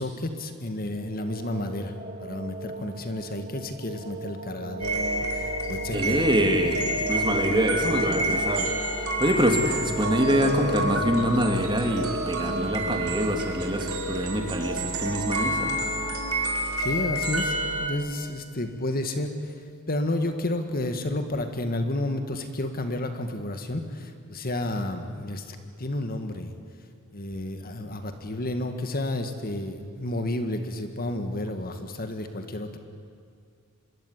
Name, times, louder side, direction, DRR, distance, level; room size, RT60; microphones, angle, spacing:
voice 1, 0.0-1.9 2.2-6.2 7.3-7.7 16.8-26.5 27.1-32.8, left 1 dB, 40° left, 7 dB, 1.9 m, -31 dB
sound 1, 0.9-15.8, right 1 dB, 40° right, 1.8 m, -37 dB
sound 2, 4.8-17.9, right 1 dB, 80° right, 3.9 m, -29 dB
voice 2, 5.9-6.8 7.1-15.7, equal, 20° right, 4 dB, 2.8 m, -25 dB
26.0 x 22.0 x 9.9 m, 2.3 s
head